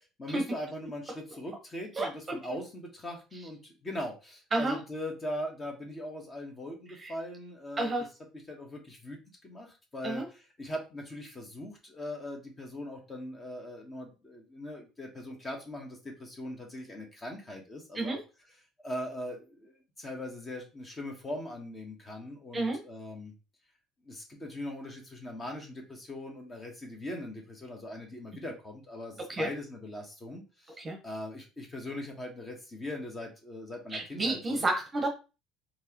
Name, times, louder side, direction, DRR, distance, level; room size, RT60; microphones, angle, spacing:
voice 1, 0.2-7.9 8.5-18.2 18.8-23.3 24.0-34.7, left 1 dB, 20° left, 2 dB, 1.3 m, -40 dB
voice 2, 2.0-2.6 4.5-4.8 7.0-7.1 7.8-8.1 10.0-10.2 17.9-18.2 22.5-22.8 29.2-29.5 30.8-31.0 33.9-35.1, right 2 dB, 20° right, 3 dB, 1.0 m, -31 dB
4.6 x 3.3 x 3.0 m, 0.30 s
cardioid pair, 140°, 0 cm